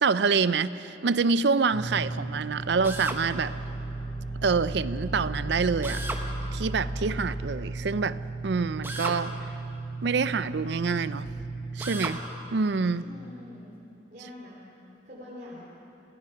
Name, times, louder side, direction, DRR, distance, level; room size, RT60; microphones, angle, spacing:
voice 1, 0.0-3.5 4.4-6.0 6.5-9.3 10.0-11.3 11.8-12.2 12.5-13.1, right 5 dB, 60° right, 15 dB, 0.5 m, -26 dB
sound 1, 1.7-12.0, right 3 dB, 60° left, 3.1 m, -36 dB
sound 2, 2.3-9.4, equal, 30° left, 1.1 m, -38 dB
Drill, 2.8-3.2 5.8-6.3 8.8-9.2 11.8-12.2, right 2 dB, 10° right, 1.1 m, -34 dB
voice 2, 13.0-13.8 14.1-14.6 15.0-15.6, left 1 dB, 45° right, -6 dB, 3.2 m, -44 dB
27.5 x 16.5 x 5.8 m, 2.8 s
head